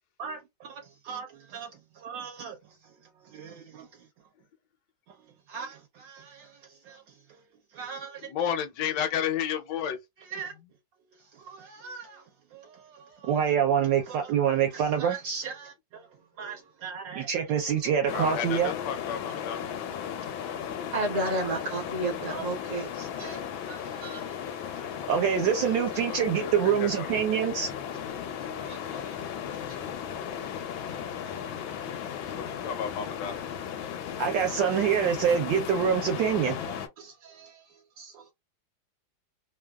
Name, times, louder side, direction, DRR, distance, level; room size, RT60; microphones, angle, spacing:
voice 1, 0.2-1.7 2.0-2.6 3.3-3.9 5.5-6.5 6.9-7.0 7.7-8.3 10.3-10.5 11.4-12.2 12.5-16.0 16.4-18.7 22.3-22.5 23.0-23.4 23.7-24.4 25.1-27.8 28.7-29.1 34.2-36.6 37.0-37.6 38.0-38.2, right 8 dB, 75° right, 1.2 m, -28 dB
voice 2, 8.3-10.0 18.1-19.7 26.1-27.1 32.4-33.4, left 8 dB, 70° left, 1.2 m, -32 dB
sound 1, 18.1-36.9, left 8 dB, 85° left, 1.4 m, -36 dB
voice 3, 20.9-22.9, right 1 dB, 50° right, 1.1 m, -30 dB
3.3 x 2.3 x 2.2 m
omnidirectional pair, 2.1 m